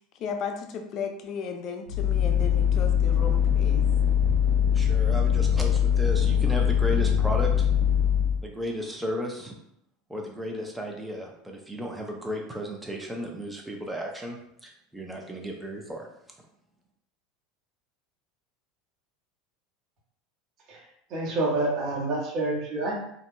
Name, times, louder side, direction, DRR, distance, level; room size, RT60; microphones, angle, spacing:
voice 1, 0.2-3.9, left 6 dB, 50° left, 5 dB, 0.5 m, -35 dB
sound 1, 1.9-8.4, left 8 dB, 70° right, 0.6 m, -22 dB
voice 2, 4.7-7.7 8.4-9.5 10.1-16.1, equal, 5° right, 0 dB, 0.8 m, -34 dB
voice 3, 21.1-23.0, right 2 dB, 55° right, -4 dB, 1.4 m, -28 dB
3.8 x 2.7 x 2.3 m, 0.75 s
hypercardioid pair, 85°, 0 cm